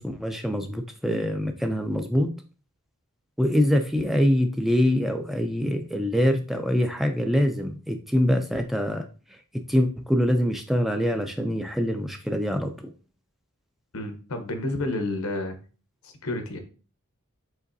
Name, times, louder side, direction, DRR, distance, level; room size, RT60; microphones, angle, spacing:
voice 1, 0.0-2.3 3.4-9.0 9.7-12.7, equal, ahead, 5 dB, 0.3 m, -24 dB
voice 2, 13.9-15.6 16.0-16.6, left 2 dB, 75° left, 6 dB, 0.9 m, -30 dB
5.0 x 3.9 x 2.6 m, 0.37 s
head